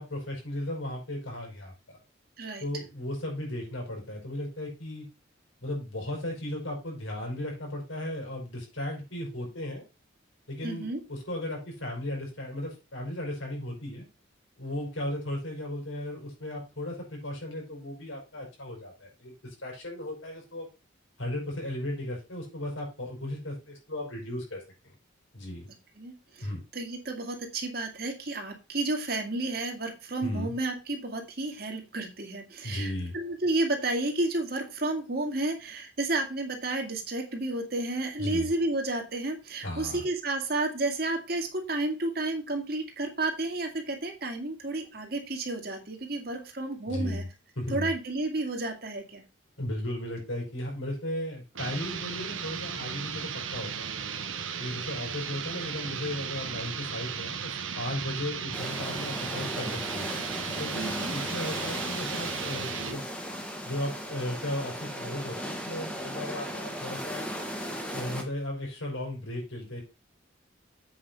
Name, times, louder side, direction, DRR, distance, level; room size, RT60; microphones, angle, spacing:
voice 1, 0.0-2.0 2.6-5.1 5.6-9.8 10.5-14.1 14.6-20.7 21.2-24.6 25.3-25.7 26.4-26.6 30.2-30.5 32.6-33.1 38.2-38.5 39.6-40.0 46.9-47.3 47.6-47.9 49.6-53.9 54.6-60.1 60.6-63.0 63.6-67.3 67.9-69.8, left 1 dB, 85° left, 0 dB, 5.2 m, -36 dB
voice 2, 10.6-11.0 25.9-47.2 47.7-49.2 60.8-61.1, right 2 dB, 50° right, 4 dB, 2.1 m, -31 dB
sound 1, 51.6-63.0, right 7 dB, 90° right, 1.1 m, -36 dB
sound 2, 58.5-68.2, equal, 5° left, 1.4 m, -36 dB
8.2 x 5.5 x 5.5 m, 0.29 s
head